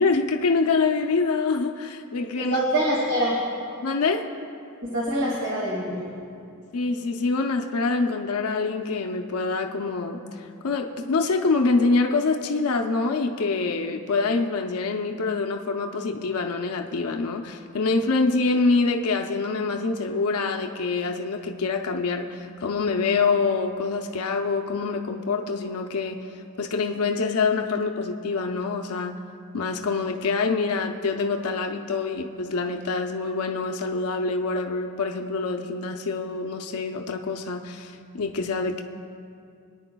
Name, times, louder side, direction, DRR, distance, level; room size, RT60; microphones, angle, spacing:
voice 1, 0.0-2.6 3.8-4.3 6.7-10.2 10.6-26.2 26.6-29.1 29.5-38.8, left 4 dB, 75° left, 4 dB, 0.6 m, -25 dB
voice 2, 2.4-3.4 4.8-6.2, right 1 dB, 65° right, -5 dB, 2.1 m, -25 dB
24.0 x 9.6 x 2.3 m, 2.4 s
head